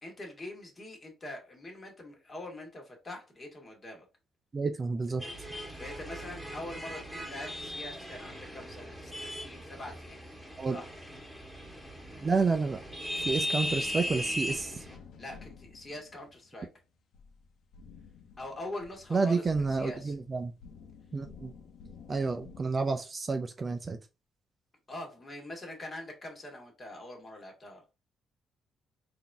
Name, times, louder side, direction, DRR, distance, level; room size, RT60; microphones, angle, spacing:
voice 1, 0.0-4.1 5.8-10.2 10.7-10.9 15.2-16.7 18.4-20.1 24.9-27.8, left 1 dB, 30° left, 1.8 m, -43 dB
voice 2, 4.5-5.2 10.6-10.8 12.2-12.8 13.2-14.8 19.1-20.5 21.1-21.5 22.1-24.0, right 4 dB, 35° right, 0.5 m, -30 dB
sound 1, 5.2-15.0, equal, 5° left, 1.9 m, -38 dB
sound 2, 13.2-22.6, left 5 dB, 75° left, 0.9 m, -52 dB
3.9 x 2.8 x 3.5 m
cardioid pair, 90°, 0 cm